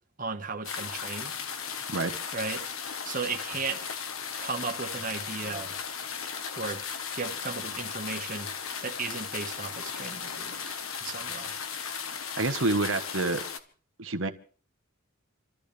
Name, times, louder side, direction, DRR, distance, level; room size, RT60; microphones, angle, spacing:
voice 1, 0.2-1.3 2.3-2.6 3.0-3.9 4.4-5.8 6.6-6.8 7.1-8.5 8.8-10.7 11.0-11.5, right 4 dB, 40° right, 1.5 m, -35 dB
sound 1, 0.6-13.6, left 6 dB, 80° left, 1.4 m, -36 dB
voice 2, 12.4-13.4 14.0-14.3, right 3 dB, 65° right, 1.3 m, -27 dB
28.0 x 13.5 x 3.4 m
head